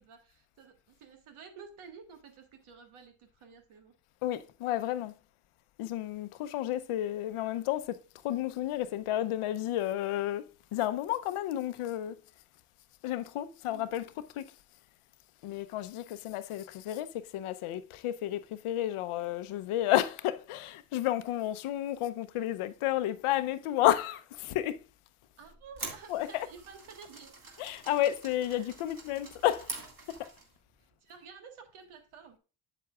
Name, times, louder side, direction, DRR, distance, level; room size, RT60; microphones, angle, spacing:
voice 1, 0.0-3.9 13.7-14.0 25.4-27.6 28.5-28.7 30.8-32.4, right 6 dB, 75° right, 1.6 m, -52 dB
voice 2, 4.2-5.1 5.8-10.4 10.7-12.2 13.0-14.0 14.4-14.5 15.4-24.8 26.1-26.5 27.6-29.7 30.1-30.3, left 13 dB, 80° left, 0.7 m, -31 dB
sound 1, 25.4-30.6, right 3 dB, 40° right, 2.1 m, -46 dB
7.8 x 7.7 x 2.3 m
cardioid pair, 75°, 50 cm